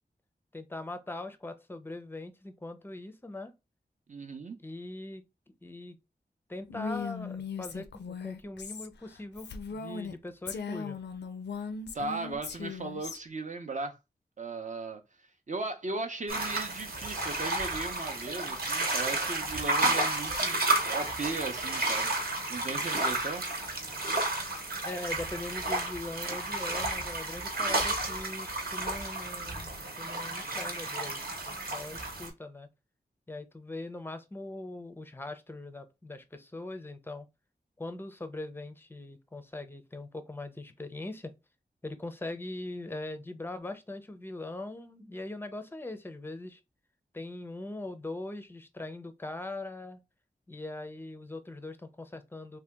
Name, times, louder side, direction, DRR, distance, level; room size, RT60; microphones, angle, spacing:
voice 1, 0.5-3.5 4.6-5.2 5.6-6.0 6.5-7.8 8.2-11.0 24.8-31.2 31.5-32.7 33.3-37.3 37.8-41.3 41.8-46.6 47.1-50.0 50.5-52.6, left 2 dB, 10° left, 0.5 m, -41 dB
voice 2, 4.1-4.6 11.9-14.0 14.4-15.0 15.5-23.4, right 3 dB, 45° right, 0.5 m, -37 dB
Female speech woman speaking, 6.7-10.1 10.5-13.2, left 5 dB, 80° left, 0.4 m, -38 dB
sound 1, 16.3-32.3, right 2 dB, 60° right, 0.9 m, -32 dB
2.8 x 2.2 x 3.4 m
wide cardioid pair, 65°, 18 cm